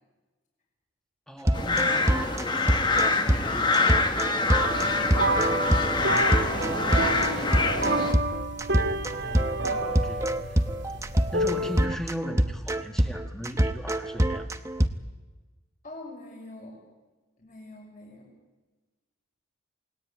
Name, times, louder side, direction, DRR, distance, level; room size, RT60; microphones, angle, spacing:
voice 1, 1.3-5.6 9.1-10.6 11.3-14.5, equal, ahead, 4 dB, 2.3 m, -39 dB
sound 1, 1.4-14.9, right 1 dB, 15° right, 1.0 m, -25 dB
sound 2, 1.5-8.1, left 3 dB, 20° left, 1.6 m, -26 dB
sound 3, 4.6-11.9, right 1 dB, 60° right, 2.8 m, -29 dB
voice 2, 6.4-7.1 15.8-16.8 17.4-18.3, left 1 dB, 40° left, -1 dB, 5.9 m, -44 dB
28.5 x 19.5 x 9.0 m, 1.2 s
head